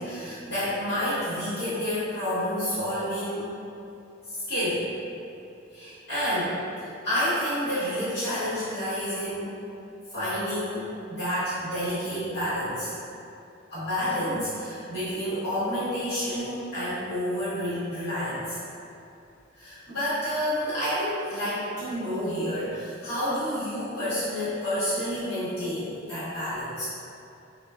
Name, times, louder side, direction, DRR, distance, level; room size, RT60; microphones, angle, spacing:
voice 1, 0.0-3.5 4.3-4.9 5.7-9.6 10.1-12.9 13.7-18.6 19.5-26.8, equal, 60° left, -15 dB, 1.2 m, -29 dB
3.6 x 2.2 x 2.3 m, 2.7 s
head